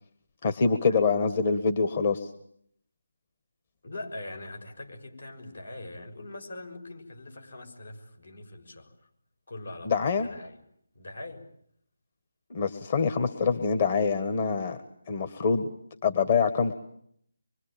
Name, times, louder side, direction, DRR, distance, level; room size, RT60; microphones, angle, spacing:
voice 1, 0.4-2.3 9.8-10.3 12.5-14.8 15.1-15.7 16.0-16.7, left 5 dB, 40° left, 7 dB, 1.7 m, -25 dB
voice 2, 3.8-9.1 9.5-10.6 10.9-11.5, left 2 dB, 70° left, 5 dB, 6.5 m, -42 dB
25.5 x 24.0 x 8.9 m, 0.69 s
figure-of-eight pair, 155°, 0 cm